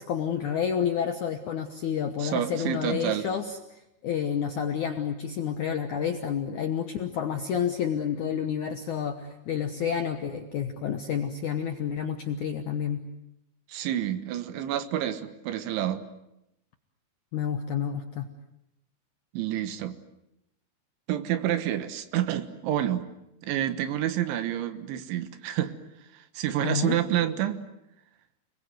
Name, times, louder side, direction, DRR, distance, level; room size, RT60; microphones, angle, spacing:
voice 1, 0.0-3.6 4.0-13.0 17.3-18.3 26.6-27.0, left 8 dB, 70° left, 6 dB, 1.8 m, -29 dB
voice 2, 2.2-3.3 13.7-16.0 19.3-20.0 21.1-23.1 23.4-25.7 26.1-27.6, right 11 dB, 85° right, 11 dB, 3.8 m, -28 dB
29.0 x 21.0 x 9.3 m, 0.86 s
omnidirectional pair, 5.2 m